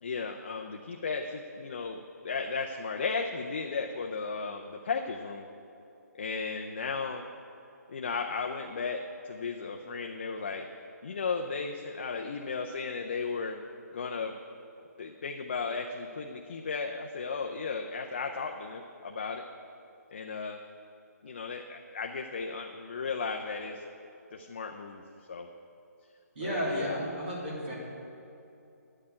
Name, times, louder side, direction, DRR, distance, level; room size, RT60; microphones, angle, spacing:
voice 1, 0.0-5.5 6.2-7.2 7.9-9.0 9.3-10.6 11.0-13.6 13.9-14.3 15.0-19.4 20.1-20.6 21.2-23.8 24.3-25.0 25.3-25.5 26.4-27.0, left 4 dB, 35° left, 2 dB, 0.5 m, -35 dB
voice 2, 26.3-27.7, equal, 40° right, -6 dB, 3.0 m, -33 dB
9.5 x 6.6 x 8.8 m, 2.8 s
hypercardioid pair, 175°, 9 cm